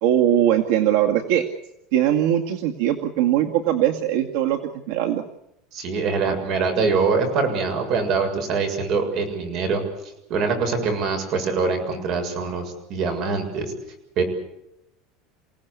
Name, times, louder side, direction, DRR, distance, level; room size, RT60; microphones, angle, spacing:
voice 1, 0.0-1.5 1.9-4.6 4.9-5.2, right 11 dB, 75° right, 3 dB, 2.2 m, -20 dB
voice 2, 5.7-9.8 10.3-13.7 14.2-14.3, right 4 dB, 45° right, 7 dB, 7.0 m, -23 dB
29.0 x 17.5 x 8.4 m, 0.85 s
cardioid pair, 165°, 0 cm